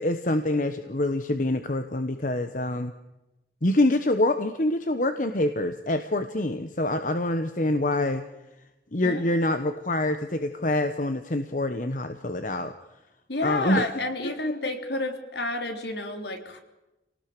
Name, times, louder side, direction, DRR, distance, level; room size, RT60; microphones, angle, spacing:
voice 1, 0.0-2.9 3.6-8.2 8.9-12.7 13.4-13.9 14.2-14.5, left 1 dB, 45° left, 8 dB, 1.2 m, -26 dB
voice 2, 13.3-16.6, left 2 dB, 65° left, 6 dB, 3.3 m, -30 dB
28.0 x 19.0 x 6.8 m, 0.97 s
head